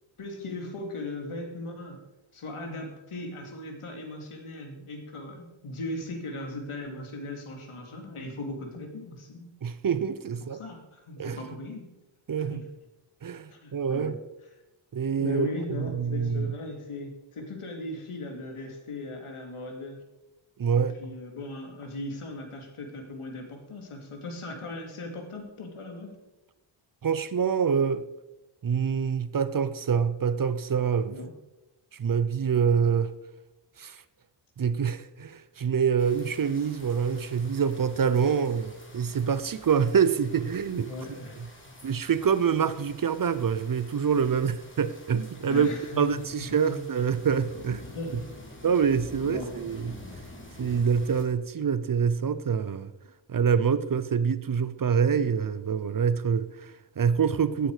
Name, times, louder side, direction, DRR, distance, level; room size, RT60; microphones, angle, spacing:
voice 1, 0.2-2.0 2.3-9.5 10.5-11.8 12.5-12.6 13.5-14.2 15.2-20.0 20.8-26.1 31.1-31.3 40.8-41.7 45.5-46.8 47.9-48.4 49.3-49.6, left 2 dB, 80° left, 2.8 m, -38 dB
voice 2, 9.6-10.6 11.2-11.6 12.3-12.6 13.2-14.2 14.9-16.5 20.6-20.9 27.0-28.1 28.6-31.2 31.9-33.1 33.8-34.0 34.6-41.2 41.8-45.7 46.0-47.8 48.1-48.2 48.6-50.0 50.6-52.9 53.3-57.7, right 7 dB, 45° right, 0.6 m, -26 dB
sound 1, 36.0-51.2, left 1 dB, 25° left, 2.8 m, -48 dB
16.5 x 9.1 x 4.9 m
wide cardioid pair, 150°, 49 cm